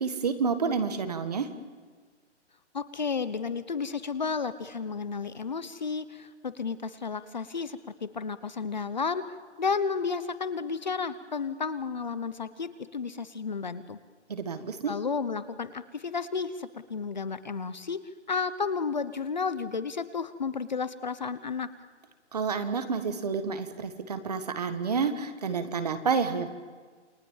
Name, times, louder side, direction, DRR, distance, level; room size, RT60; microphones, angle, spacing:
voice 1, 0.0-1.5 14.3-14.9 22.3-26.5, right 5 dB, 35° right, 9 dB, 1.6 m, -29 dB
voice 2, 2.7-9.2 9.6-14.0 14.9-18.0 18.3-21.7, left 5 dB, 40° left, 14 dB, 0.9 m, -32 dB
28.5 x 20.5 x 7.3 m, 1.5 s
hypercardioid pair, 180°, 35 cm